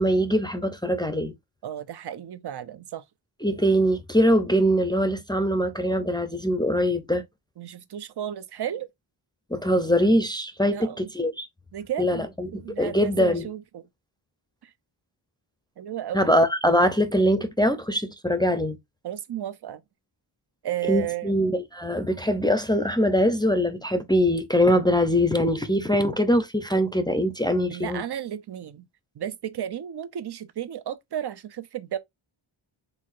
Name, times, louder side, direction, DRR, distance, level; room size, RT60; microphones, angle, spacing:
voice 1, 0.0-1.3 3.4-7.2 9.5-11.5 12.0-13.5 16.1-18.8 20.9-28.0, equal, 10° left, 0.5 m, -22 dB
voice 2, 1.6-3.0 7.6-8.9 10.7-11.1 11.7-12.3 12.5-13.9 14.6-14.7 15.8-16.3 19.0-19.8 20.6-21.3 27.7-28.9 29.2-32.0, right 10 dB, 55° right, 0.6 m, -33 dB
4.7 x 3.7 x 2.5 m
wide cardioid pair, 100°, 50 cm